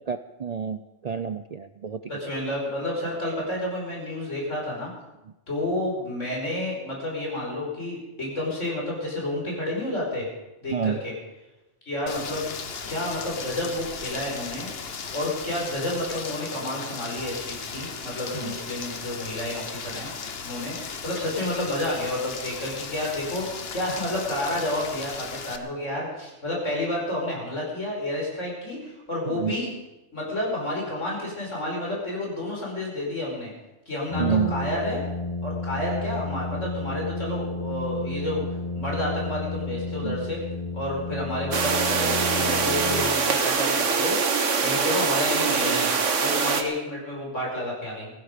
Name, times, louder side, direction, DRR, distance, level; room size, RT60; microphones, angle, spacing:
voice 1, 0.1-2.0 10.7-11.0 18.4-18.5 29.3-29.5 34.2-34.5 40.0-40.2, right 7 dB, 50° right, 10 dB, 0.5 m, -28 dB
voice 2, 2.1-4.9 5.5-10.3 10.6-11.1 11.9-12.5 12.9-14.7 15.1-20.1 20.4-29.7 30.1-33.5 33.9-35.0 35.4-38.5 38.8-40.4 40.7-44.2 44.6-45.9 46.2-48.1, left 1 dB, 75° left, -2 dB, 5.4 m, -30 dB
Rain, 12.1-25.6, left 5 dB, 55° left, 1.3 m, -36 dB
Brass instrument, 34.1-43.6, left 2 dB, 25° left, 1.6 m, -32 dB
sound 1, 41.5-46.6, right 5 dB, 75° right, 1.6 m, -23 dB
17.5 x 15.0 x 5.2 m, 1.0 s
omnidirectional pair, 1.3 m